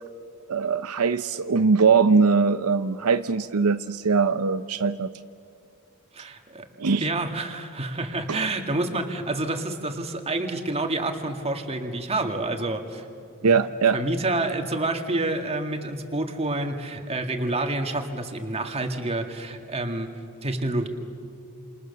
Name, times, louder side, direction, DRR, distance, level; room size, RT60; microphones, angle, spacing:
voice 1, 0.5-5.1 6.8-7.1 8.3-8.4 13.4-14.0, right 5 dB, 80° right, 10 dB, 0.7 m, -21 dB
voice 2, 6.1-6.7 7.0-13.1 13.4-13.5 13.9-20.2 20.4-20.9, right 2 dB, 30° right, 5 dB, 2.2 m, -28 dB
28.0 x 28.0 x 6.9 m, 2.6 s
head